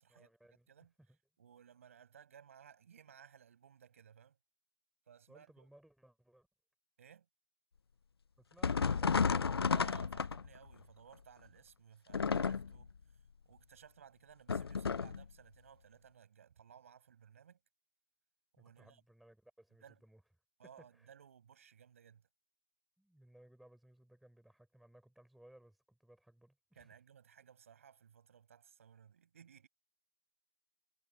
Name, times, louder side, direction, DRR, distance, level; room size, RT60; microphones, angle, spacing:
voice 1, 0.1-0.7 1.0-1.2 5.3-6.5 8.4-9.3 18.6-20.2 20.8-21.1 23.0-26.9, right 1 dB, ahead, 4.6 m, -63 dB
voice 2, 1.4-4.4 5.1-5.7 7.0-7.3 9.7-12.9 13.4-17.6 18.5-19.0 19.8-20.0 20.6-22.2 26.7-29.7, right 8 dB, 35° right, 6.7 m, -59 dB
sound 1, 8.6-10.7 12.1-12.9 14.5-15.2, left 5 dB, 85° left, 0.6 m, -32 dB
hypercardioid pair, 175°, 13 cm